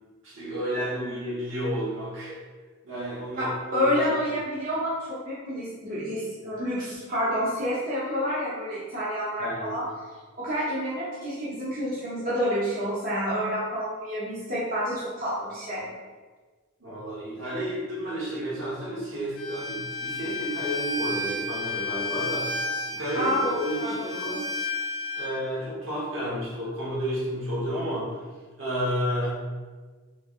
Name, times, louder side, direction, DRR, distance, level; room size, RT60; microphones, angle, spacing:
voice 1, 0.2-2.4 2.8-4.4 9.4-9.8 16.8-22.5 22.9-24.5 25.1-28.2 28.6-29.4, equal, 65° right, -7 dB, 1.2 m, -31 dB
voice 2, 3.3-9.9 10.4-15.9 23.1-24.1, equal, 45° right, -10 dB, 0.7 m, -29 dB
Bowed string instrument, 19.4-25.3, left 2 dB, 85° left, 0.5 m, -32 dB
3.2 x 3.2 x 2.5 m, 1.4 s
head